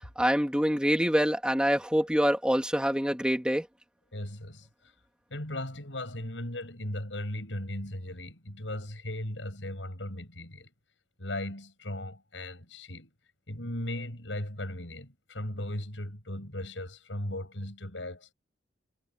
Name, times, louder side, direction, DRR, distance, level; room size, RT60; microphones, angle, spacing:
voice 1, 0.2-3.6, equal, 5° right, 3.0 m, -25 dB
voice 2, 4.1-4.7 5.3-10.7 11.2-13.1 13.5-18.3, left 1 dB, 90° left, 7.3 m, -37 dB
head